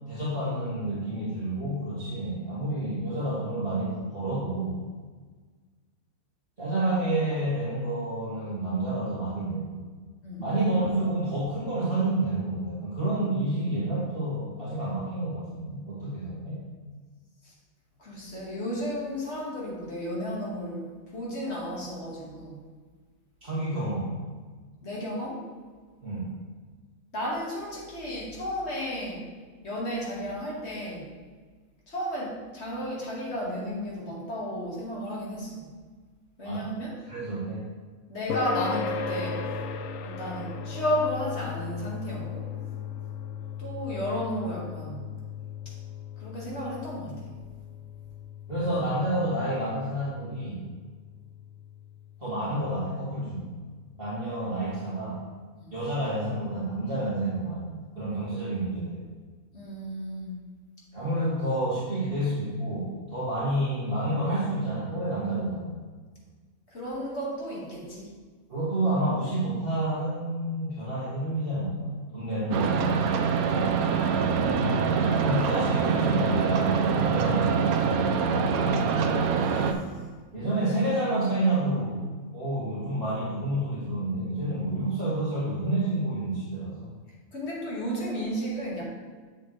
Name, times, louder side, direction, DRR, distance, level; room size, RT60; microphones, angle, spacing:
voice 1, 0.1-4.8 6.6-9.8 10.4-16.6 23.4-24.2 26.0-26.4 36.4-36.7 37.0-37.6 48.5-50.6 52.2-53.5 54.0-55.2 55.7-59.1 60.9-65.8 68.5-73.1 75.2-78.0 80.3-82.0 82.3-86.9, right 1 dB, 40° right, -10 dB, 2.1 m, -29 dB
voice 2, 18.0-20.8 21.1-22.6 24.8-25.4 27.1-29.3 29.6-31.1 31.9-35.7 36.4-36.9 38.1-39.5 40.0-42.6 43.6-45.0 46.2-47.3 55.6-55.7 59.5-60.4 66.7-68.1 73.3-73.9 75.0-75.3 87.3-88.8, equal, 45° left, -5 dB, 2.1 m, -33 dB
sound 1, 38.3-53.2, left 5 dB, 70° left, 0.9 m, -37 dB
sound 2, 72.5-79.7, right 5 dB, 80° right, 1.1 m, -24 dB
7.7 x 7.0 x 3.2 m, 1.5 s
omnidirectional pair, 1.5 m